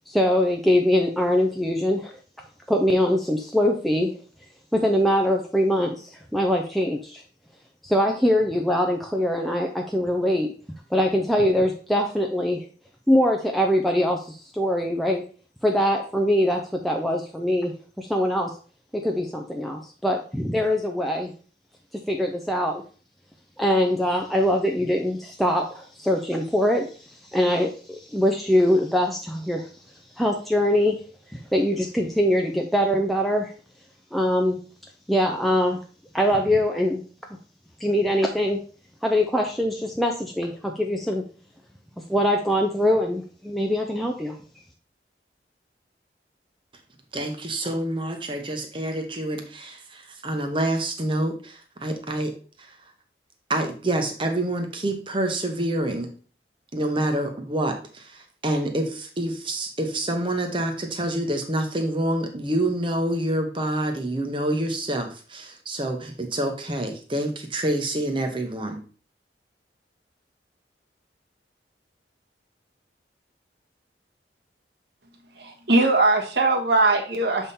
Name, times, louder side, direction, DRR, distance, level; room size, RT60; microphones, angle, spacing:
voice 1, 0.1-2.2 2.7-4.2 4.7-7.2 7.8-10.5 10.9-12.6 13.1-15.2 15.6-18.5 18.9-21.3 22.1-22.8 23.6-29.7 30.2-30.9 31.3-33.5 34.1-34.6 35.1-35.8 36.1-37.0 37.8-38.6 39.0-41.2 42.1-44.4, equal, ahead, 1 dB, 0.5 m, -23 dB
voice 2, 47.1-52.8 53.5-56.1 56.7-68.8, right 1 dB, 30° right, 5 dB, 1.0 m, -27 dB
voice 3, 75.4-77.5, right 2 dB, 70° right, 1 dB, 1.4 m, -20 dB
7.1 x 3.6 x 4.1 m, 0.39 s
head